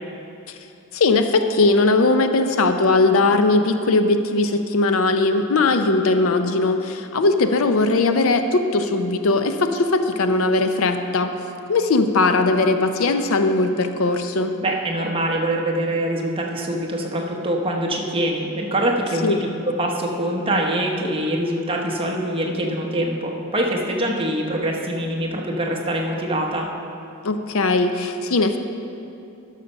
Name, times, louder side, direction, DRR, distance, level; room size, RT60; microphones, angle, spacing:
voice 1, 0.9-11.3 11.7-14.5 19.2-19.4 27.2-28.6, left 3 dB, 65° left, 7 dB, 0.6 m, -19 dB
voice 2, 14.6-19.4 19.6-26.7, right 1 dB, 25° right, -1 dB, 1.1 m, -24 dB
12.0 x 6.6 x 5.4 m, 2.7 s
head